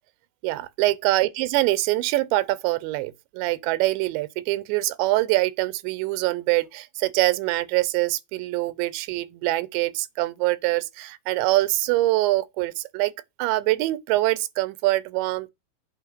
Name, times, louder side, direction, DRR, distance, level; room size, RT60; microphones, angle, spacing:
voice 1, 0.4-13.1 13.4-15.5, right 18 dB, 90° right, 3.0 m, -24 dB
8.2 x 3.7 x 6.5 m
omnidirectional pair, 5.0 m